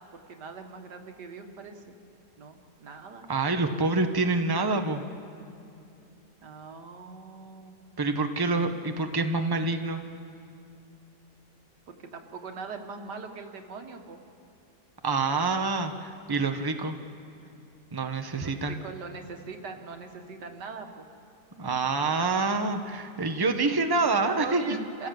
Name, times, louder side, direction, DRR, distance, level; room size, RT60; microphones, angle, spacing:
voice 1, 0.3-2.0 2.4-3.3 6.4-7.8 11.9-14.2 17.4-17.5 18.4-21.1 24.4-25.1, right 4 dB, 80° right, 5 dB, 2.1 m, -41 dB
voice 2, 3.3-5.0 8.0-10.0 15.0-17.0 17.9-18.8 21.6-24.8, right 3 dB, 15° right, 6 dB, 0.9 m, -27 dB
29.5 x 16.0 x 7.7 m, 2.6 s
omnidirectional pair, 1.8 m